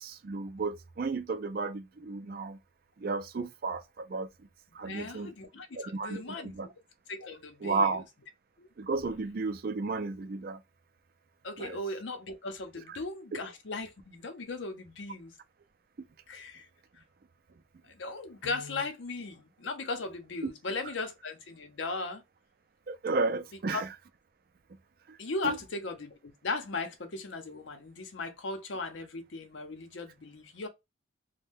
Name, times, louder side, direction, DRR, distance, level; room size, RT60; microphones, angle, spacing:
voice 1, 0.0-2.6 3.0-4.3 4.7-5.3 5.7-6.7 7.6-8.0 8.8-10.6 11.6-11.8 12.9-13.0 13.3-13.4 20.4-20.5 22.9-23.9 25.4-25.6, right 4 dB, 50° right, 0.4 m, -33 dB
voice 2, 4.8-6.7 7.1-7.9 8.6-8.7 11.4-15.3 16.3-16.7 17.9-22.2 23.7-23.8 25.2-30.7, left 3 dB, 75° left, 0.7 m, -37 dB
2.7 x 2.2 x 3.5 m
head